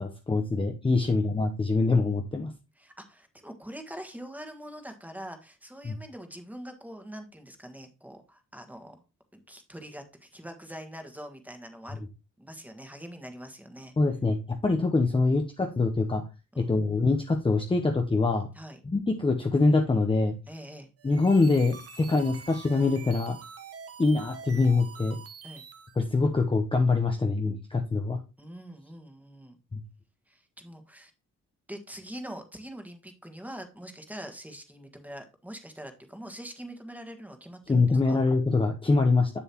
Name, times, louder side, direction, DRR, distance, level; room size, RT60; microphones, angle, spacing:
voice 1, 0.0-2.5 5.8-6.0 14.0-16.2 16.6-18.5 18.8-20.3 21.0-23.4 24.0-25.2 26.0-28.2 29.7-29.8 37.7-39.3, left 3 dB, 15° left, 3 dB, 0.9 m, -24 dB
voice 2, 2.8-9.0 9.3-12.0 12.4-13.9 16.5-16.7 18.5-18.8 20.5-20.9 25.4-25.6 28.4-29.6 30.3-31.1 31.7-38.2, equal, 5° right, 6 dB, 1.6 m, -44 dB
sound 1, 21.0-26.0, right 6 dB, 50° right, 1.1 m, -46 dB
7.0 x 7.0 x 2.9 m, 0.28 s
cardioid pair, 90°, 30 cm